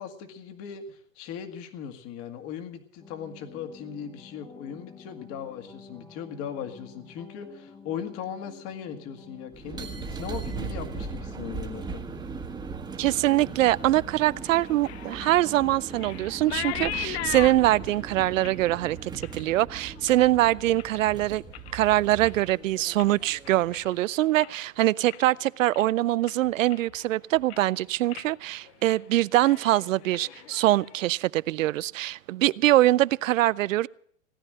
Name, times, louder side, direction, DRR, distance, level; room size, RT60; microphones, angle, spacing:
voice 1, 0.0-12.1, left 8 dB, 35° left, 2.0 m, -38 dB
sound 1, 3.0-12.0, left 5 dB, 10° left, 0.8 m, -50 dB
sound 2, 9.5-23.9, right 5 dB, 10° right, 1.5 m, -39 dB
voice 2, 13.0-21.4 21.7-33.9, right 15 dB, 70° right, 0.5 m, -23 dB
sound 3, 14.4-21.1 21.4-21.9 22.2-24.7 25.0-25.4 25.7-25.9 26.3-27.1 27.4-27.7 28.1-28.3 28.6-29.0 29.3-31.1, left 13 dB, 50° left, 0.7 m, -39 dB
17.5 x 9.7 x 7.7 m
hypercardioid pair, 135°, 40 cm